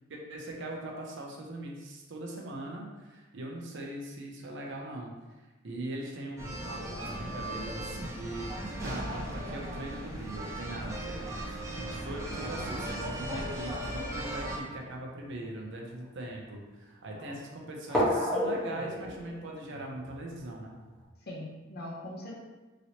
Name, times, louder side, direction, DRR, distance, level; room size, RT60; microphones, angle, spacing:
voice 1, 0.1-5.1 5.6-8.5 8.8-20.8, right 1 dB, 60° right, 0 dB, 0.6 m, -41 dB
sound 1, 6.4-14.6, right 1 dB, 15° right, 0.5 m, -37 dB
sound 2, 14.1-15.3 16.0-16.1 17.9-21.0, equal, 5° left, 0.9 m, -33 dB
voice 2, 17.1-17.4 21.2-22.4, left 1 dB, 50° left, -3 dB, 0.7 m, -42 dB
3.0 x 2.8 x 2.8 m, 1.2 s
head